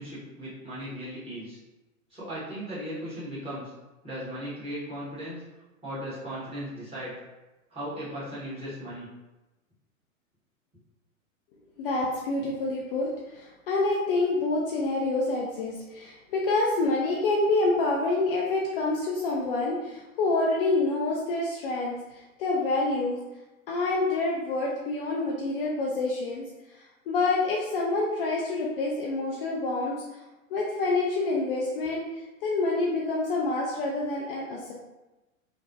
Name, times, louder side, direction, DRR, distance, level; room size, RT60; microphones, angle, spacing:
voice 1, 0.0-1.6 2.1-3.7 4.0-5.4 5.8-7.1 7.7-9.1, equal, 15° right, -10 dB, 1.4 m, -37 dB
voice 2, 11.8-23.2 23.7-26.4 26.7-29.9 30.5-32.1 32.4-34.7, left 2 dB, 45° left, -3 dB, 0.4 m, -27 dB
3.2 x 2.0 x 2.7 m, 1.0 s
figure-of-eight pair, 110°, 42 cm